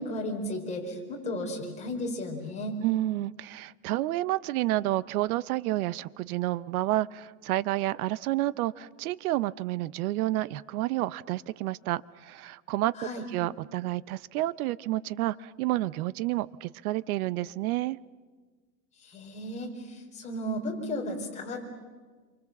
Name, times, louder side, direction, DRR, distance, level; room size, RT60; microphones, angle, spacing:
voice 1, 0.0-2.8 12.9-13.2 19.0-21.7, left 1 dB, 15° left, -1 dB, 4.7 m, -34 dB
voice 2, 2.8-12.9 13.3-18.0, right 16 dB, 90° right, 18 dB, 0.8 m, -30 dB
27.5 x 24.5 x 7.2 m, 1.4 s
supercardioid pair, 160°, 42 cm